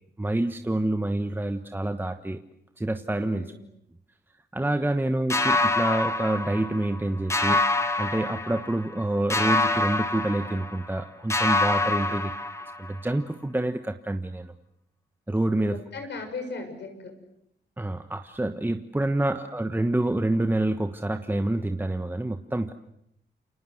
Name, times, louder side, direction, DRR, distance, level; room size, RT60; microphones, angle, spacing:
voice 1, 0.2-2.4 2.8-3.5 4.5-7.6 8.0-12.3 12.8-14.5 15.3-15.8 17.8-22.7, right 1 dB, 10° right, 7 dB, 1.3 m, -27 dB
voice 2, 3.2-3.6 11.8-12.2 15.5-17.1, left 3 dB, 80° left, 6 dB, 7.0 m, -39 dB
sound 1, 5.3-7.0 7.3-9.0 9.3-11.0 11.3-13.0, left 2 dB, 15° left, 2.0 m, -26 dB
29.0 x 26.0 x 7.9 m, 0.76 s
cardioid pair, 95°, 18 cm